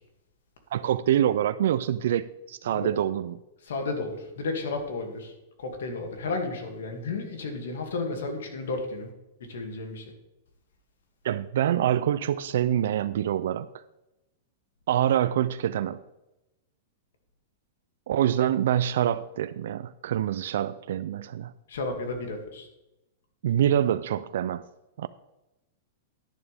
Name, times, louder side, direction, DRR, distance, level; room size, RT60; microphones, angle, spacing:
voice 1, 0.7-3.4 11.2-13.7 14.9-16.0 18.1-21.5 23.4-24.6 25.0-25.1, right 10 dB, 70° right, 0.4 m, -25 dB
voice 2, 3.6-5.3 5.6-9.1 9.5-10.0 21.7-22.7, left 3 dB, 85° left, 2.4 m, -32 dB
11.0 x 11.0 x 3.5 m
supercardioid pair, 160°, 0 cm